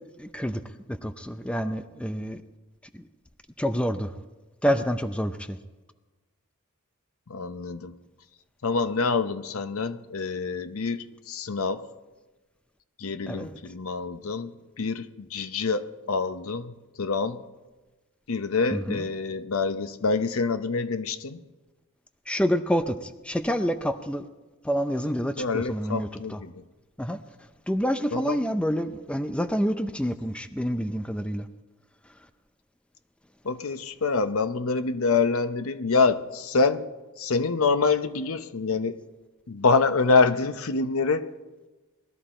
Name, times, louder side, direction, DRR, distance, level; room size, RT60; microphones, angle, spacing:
voice 1, 0.2-0.6 0.9-2.4 2.9-3.0 3.6-4.1 4.6-5.6 13.3-13.6 18.7-19.0 22.3-24.3 24.6-26.4 27.0-27.2 27.7-31.5, equal, 5° left, 0.5 m, -28 dB
voice 2, 7.3-7.9 8.6-11.8 13.0-16.7 17.0-17.4 18.3-21.4 25.4-26.5 28.1-28.4 33.4-36.9 37.2-39.0 39.5-41.3, left 4 dB, 70° left, 0.7 m, -26 dB
19.5 x 13.0 x 4.4 m
head